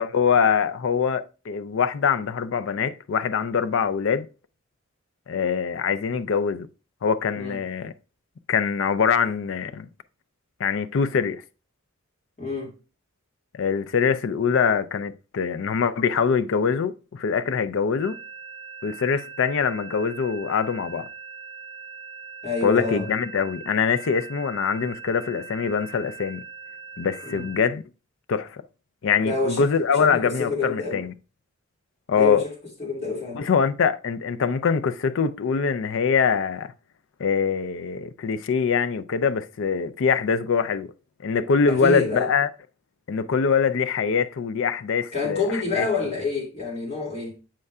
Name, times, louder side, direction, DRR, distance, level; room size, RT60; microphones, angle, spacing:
voice 1, 0.0-4.3 5.3-6.7 7.0-7.9 8.5-9.9 10.6-11.4 13.5-18.2 18.8-21.1 22.6-26.4 27.0-27.8 28.3-28.6 29.0-31.1 32.1-32.4 33.3-36.7 37.2-40.9 41.2-42.5 43.1-45.4 45.7-45.9, left 6 dB, 65° left, 0.4 m, -23 dB
voice 2, 12.4-12.7 22.4-23.1 27.2-27.5 29.2-29.7 30.0-31.0 32.1-32.5 32.8-33.4 41.7-42.3 45.1-47.4, left 3 dB, 30° left, 2.3 m, -27 dB
sound 1, 18.0-27.7, right 7 dB, 25° right, 2.0 m, -41 dB
7.6 x 5.3 x 2.3 m
head